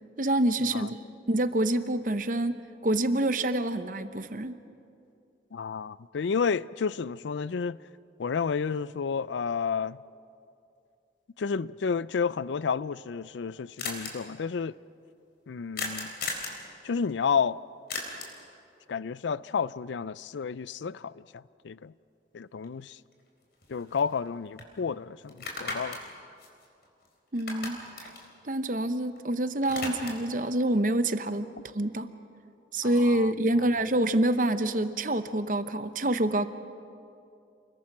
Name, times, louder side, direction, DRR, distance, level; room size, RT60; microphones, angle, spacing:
voice 1, 0.2-4.6 27.3-28.1 28.4-31.5 31.7-32.1 32.7-36.5, right 1 dB, 45° right, 0.9 m, -27 dB
voice 2, 5.5-7.8 8.2-10.0 11.4-14.8 15.5-16.1 16.8-17.6 18.9-21.9 22.3-23.0 23.7-26.0 32.8-33.6, left 6 dB, 85° left, 0.4 m, -31 dB
sound 1, 12.8-12.9 13.1-13.2 13.4-13.5 13.8-14.1 15.8-16.6 17.9-18.4 22.6-22.7 23.1-24.3 24.6-24.7 25.3-27.1 27.3-29.2 29.5-30.3, left 3 dB, 60° left, 3.7 m, -37 dB
28.5 x 21.5 x 6.1 m
head